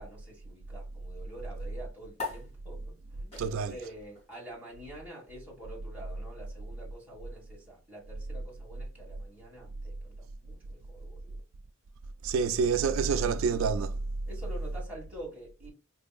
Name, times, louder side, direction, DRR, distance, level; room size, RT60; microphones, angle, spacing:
voice 1, 0.0-11.4 12.7-13.3 14.3-15.7, right 1 dB, 10° right, 1.8 m, -47 dB
sound 1, 2.1-9.0, left 3 dB, 30° left, 2.0 m, -46 dB
voice 2, 3.4-3.7 12.2-14.0, right 5 dB, 75° right, 0.3 m, -27 dB
4.6 x 2.7 x 2.3 m
head